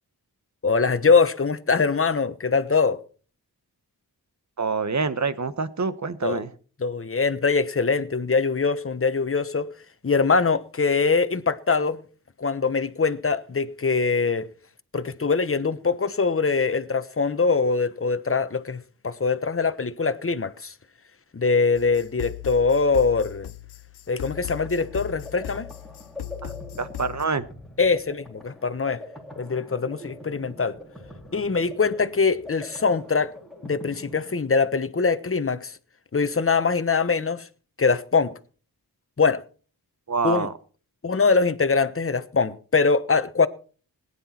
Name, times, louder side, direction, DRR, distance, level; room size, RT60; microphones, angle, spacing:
voice 1, 0.6-3.0 6.2-6.4 6.8-9.7 10.0-12.0 12.4-14.5 14.9-18.8 19.0-20.7 21.3-23.5 24.1-25.7 27.8-29.0 29.4-30.8 31.3-33.3 33.6-35.8 36.1-37.5 37.8-38.4 39.2-39.4 40.2-40.5 41.0-43.5, left 4 dB, 35° left, 1.2 m, -23 dB
voice 2, 4.6-6.5 26.4-27.5 40.1-40.5, right 4 dB, 45° right, 1.3 m, -26 dB
sound 1, 21.7-27.2, left 16 dB, 85° left, 0.7 m, -38 dB
sound 2, 24.1-34.9, left 1 dB, ahead, 3.5 m, -44 dB
17.5 x 10.5 x 4.5 m
cardioid pair, 50°, 39 cm